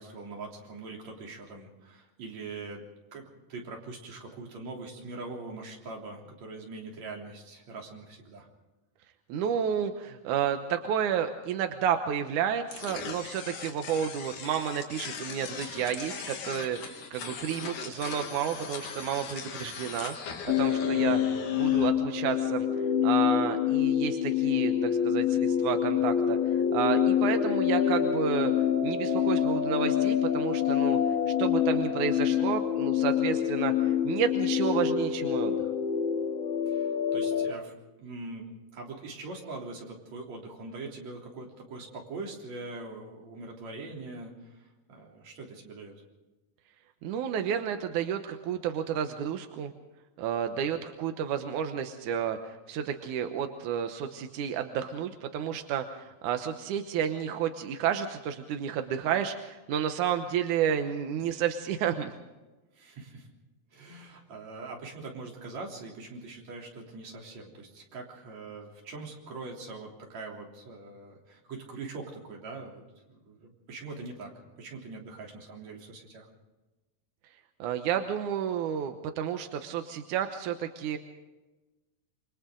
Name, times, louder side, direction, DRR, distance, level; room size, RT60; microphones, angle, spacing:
voice 1, 0.0-2.8 3.1-8.5 20.9-21.2 36.7-37.7 38.0-45.9 62.7-63.3 63.7-72.8 73.1-74.3 74.6-76.3, right 3 dB, 45° right, -1 dB, 4.4 m, -42 dB
voice 2, 9.3-20.2 20.4-21.2 21.5-22.7 23.0-28.5 28.8-31.0 31.4-35.6 47.0-49.7 50.2-62.1 77.6-81.0, right 8 dB, 70° right, 6 dB, 2.0 m, -31 dB
sound 1, 12.7-21.9, left 6 dB, 55° left, 3.1 m, -40 dB
sound 2, 20.5-37.5, left 9 dB, 75° left, 2.8 m, -26 dB
28.0 x 24.5 x 3.9 m, 1.1 s
omnidirectional pair, 4.7 m